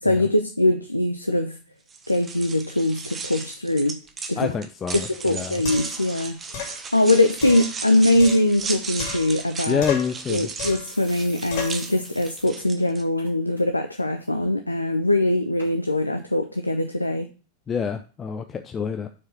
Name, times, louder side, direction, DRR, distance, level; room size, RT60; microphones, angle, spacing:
voice 1, 0.0-1.6 2.1-4.0 4.3-4.5 4.9-9.8 10.3-17.3, left 1 dB, 85° left, 7 dB, 0.5 m, -22 dB
sound 1, 1.9-13.0, right 4 dB, 20° right, 0.9 m, -35 dB
voice 2, 4.4-5.6 9.7-10.5 17.7-19.1, left 7 dB, 20° left, 6 dB, 0.5 m, -27 dB
sound 2, 4.9-5.0 5.6-6.0 6.5-6.8 7.4-8.7 9.0-9.5 9.8-10.2 10.6-10.9 11.5-11.8, left 7 dB, 50° left, 2.7 m, -33 dB
sound 3, 10.3-10.4 10.8-12.5 12.8-12.9 13.2-13.6 14.0-14.3 15.0-15.1 15.6-15.7 16.4-16.5, left 1 dB, 85° right, 3.0 m, -44 dB
6.2 x 4.7 x 5.7 m, 0.36 s
figure-of-eight pair, 90°, 0 cm